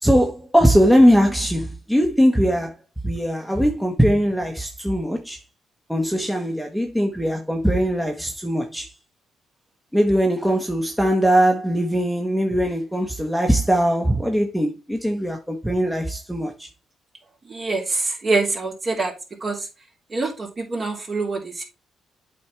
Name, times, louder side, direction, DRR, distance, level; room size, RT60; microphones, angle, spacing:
voice 1, 0.0-2.7 3.0-5.4 5.9-8.9 9.9-16.7, equal, ahead, 1.2 m, -20 dB
voice 2, 17.4-19.1 19.4-19.7 20.1-21.6, right 3 dB, 35° right, 3.1 m, -25 dB
8.3 x 4.3 x 4.6 m
cardioid pair, 90°, 0 cm